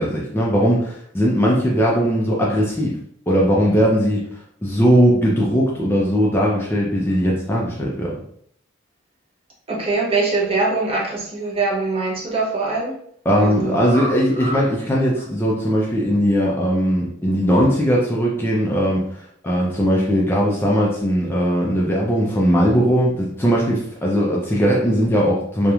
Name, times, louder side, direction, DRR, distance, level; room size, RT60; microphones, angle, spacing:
voice 1, 0.0-2.9 3.3-4.2 4.6-8.1 13.3-19.0 19.4-25.7, equal, 10° left, -4 dB, 0.3 m, -19 dB
voice 2, 9.7-12.9 13.4-14.1 14.4-14.6, right 3 dB, 30° right, -3 dB, 0.6 m, -23 dB
2.9 x 2.1 x 2.3 m, 0.67 s
head